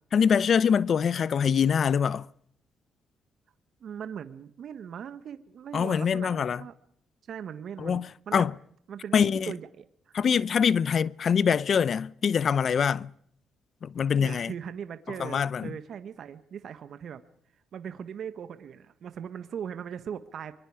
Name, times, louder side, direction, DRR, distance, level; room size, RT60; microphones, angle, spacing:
voice 1, 0.1-2.3 5.7-6.6 7.8-8.1 8.3-8.5 9.1-9.5 10.1-13.1 13.8-14.5 15.2-15.7, left 7 dB, 50° left, 0.8 m, -24 dB
voice 2, 3.8-6.7 7.3-8.5 8.9-10.2 14.2-17.2 17.7-20.5, right 8 dB, 60° right, 1.5 m, -39 dB
24.5 x 22.5 x 5.0 m
cardioid pair, 90°, 0 cm